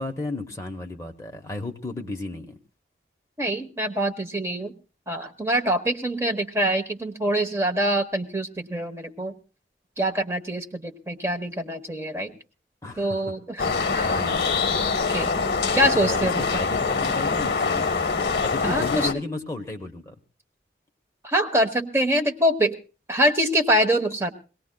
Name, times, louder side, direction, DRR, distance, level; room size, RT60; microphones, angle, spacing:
voice 1, 0.0-2.6 12.8-13.2 13.7-14.5 15.9-20.1, left 2 dB, 20° left, 4 dB, 0.9 m, -33 dB
voice 2, 3.4-4.7 5.1-9.4 10.0-12.3 13.0-13.6 13.9-14.1 15.1-15.3 15.7-16.5 18.6-19.1 21.2-22.8 23.1-24.3, equal, 15° right, 4 dB, 1.0 m, -24 dB
sound 1, 13.6-19.1, left 4 dB, 65° left, 0.8 m, -24 dB
23.5 x 18.0 x 2.2 m, 0.34 s
head